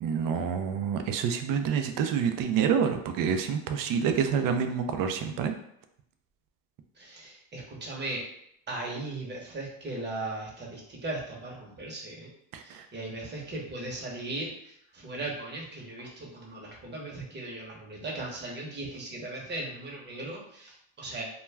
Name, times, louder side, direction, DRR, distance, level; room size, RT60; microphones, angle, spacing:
voice 1, 0.0-5.5 12.5-12.9, right 7 dB, 50° right, 7 dB, 0.4 m, -27 dB
voice 2, 7.0-8.2 8.7-12.3 12.6-21.2, right 2 dB, 25° right, -2 dB, 0.9 m, -38 dB
2.3 x 2.1 x 3.3 m, 0.73 s
supercardioid pair, 95°, 43 cm